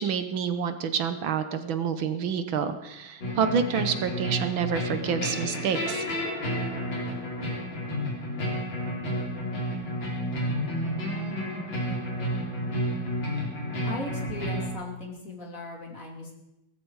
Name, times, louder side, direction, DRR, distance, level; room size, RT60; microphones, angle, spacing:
voice 1, 0.0-6.0, right 7 dB, 70° right, 10 dB, 1.8 m, -28 dB
sound 1, 3.2-14.7, equal, 65° left, 4.8 m, -31 dB
voice 2, 13.8-16.3, left 2 dB, 40° left, 1 dB, 3.1 m, -38 dB
17.5 x 14.5 x 4.8 m, 0.92 s
omnidirectional pair, 2.3 m